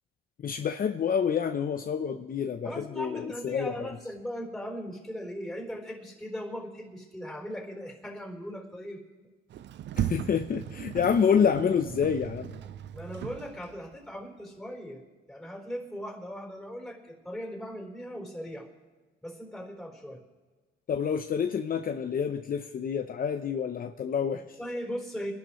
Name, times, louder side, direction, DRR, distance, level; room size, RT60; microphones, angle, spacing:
voice 1, 0.4-3.9 10.0-12.6 20.9-24.4, left 7 dB, 45° left, 6 dB, 0.8 m, -28 dB
voice 2, 2.6-9.0 10.9-11.0 12.9-15.0 15.3-18.7 19.2-20.2 24.3-25.3, equal, ahead, 0 dB, 4.2 m, -39 dB
Sliding door, 9.5-14.0, right 11 dB, 65° right, 0.5 m, -37 dB
24.0 x 11.5 x 3.2 m, 1.3 s
cardioid pair, 90°, 20 cm